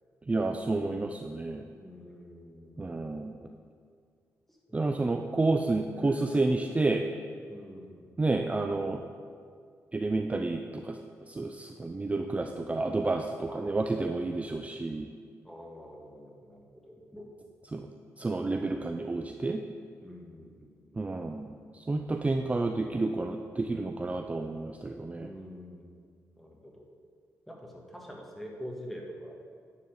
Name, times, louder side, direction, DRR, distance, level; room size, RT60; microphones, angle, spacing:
voice 1, 0.3-1.6 2.8-3.5 4.7-7.1 8.2-9.0 9.9-15.1 17.7-17.9 18.2-19.6 21.0-25.3, right 2 dB, 20° right, 4 dB, 0.5 m, -30 dB
voice 2, 1.8-3.0 4.5-4.6 5.9-6.2 7.5-8.1 12.3-12.9 13.5-13.7 15.4-17.3 20.0-21.0 25.2-26.0 26.3-26.9 27.5-29.4, equal, 5° left, -1 dB, 1.6 m, -46 dB
10.0 x 4.2 x 6.5 m, 2.1 s
cardioid pair, 75°, 6 cm